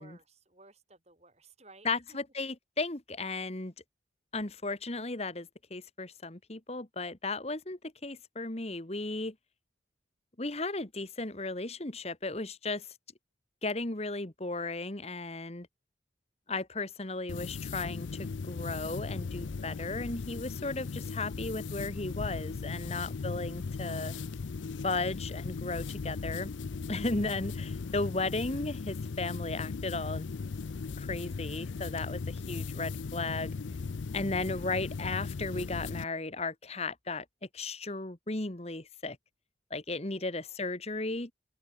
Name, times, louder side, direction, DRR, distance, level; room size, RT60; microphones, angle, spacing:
voice 1, 0.0-2.2 22.9-23.3 39.9-40.6, right 3 dB, 35° right, 6.6 m, -59 dB
voice 2, 1.8-3.7 4.3-9.3 10.4-12.9 13.6-15.7 16.5-24.1 24.8-26.5 26.9-30.3 31.0-33.5 34.1-37.2 37.5-39.2 39.7-41.3, left 3 dB, 35° left, 1.5 m, -35 dB
sound 1, 17.3-36.0, left 4 dB, 80° left, 0.5 m, -38 dB
open air
head